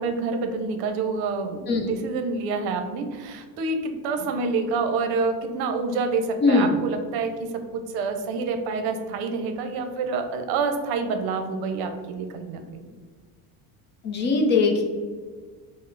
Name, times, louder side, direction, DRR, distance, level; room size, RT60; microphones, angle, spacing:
voice 1, 0.0-12.6, right 4 dB, 70° right, 6 dB, 0.7 m, -27 dB
voice 2, 6.4-6.7 14.0-14.8, left 3 dB, 30° left, 3 dB, 0.5 m, -20 dB
5.3 x 2.1 x 3.8 m, 1.5 s
cardioid pair, 180°, 39 cm